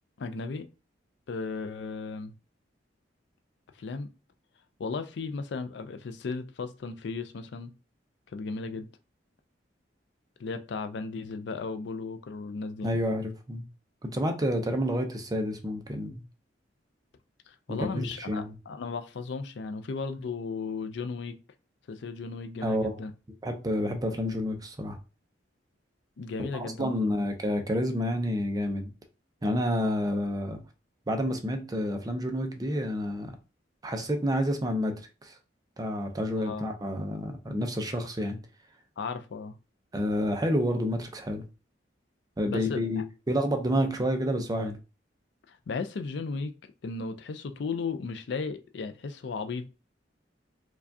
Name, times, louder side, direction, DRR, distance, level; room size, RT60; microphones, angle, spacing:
voice 1, 0.2-0.7 1.3-2.3 3.8-4.1 4.8-7.7 8.3-8.9 10.4-12.9 17.5-21.3 21.9-23.1 26.2-27.2 36.4-36.7 39.0-39.5 42.5-43.0 45.5-46.5 46.8-49.7, left 4 dB, 65° left, 0.4 m, -35 dB
voice 2, 12.8-13.6 14.0-16.2 17.7-18.5 22.6-23.0 23.4-25.0 26.4-28.9 29.4-30.6 31.1-33.4 33.8-35.4 35.8-38.4 39.9-41.4 42.4-44.8, equal, 20° right, 0.5 m, -29 dB
4.6 x 2.3 x 2.6 m
head